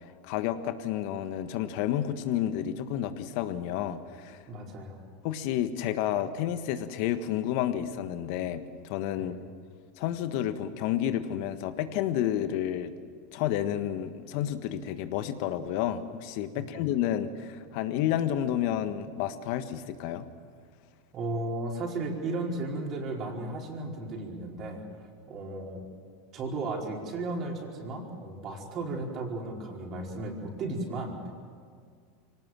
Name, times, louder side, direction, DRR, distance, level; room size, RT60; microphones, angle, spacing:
voice 1, 0.2-4.4 5.2-9.3 10.0-12.9 13.3-20.3, left 11 dB, 60° left, 10 dB, 1.5 m, -30 dB
voice 2, 4.5-5.0 9.2-9.3 16.7-16.8 21.1-25.8 26.3-31.3, right 2 dB, 45° right, 0 dB, 4.9 m, -35 dB
24.5 x 18.0 x 7.6 m, 2.1 s
hypercardioid pair, 95°, 0 cm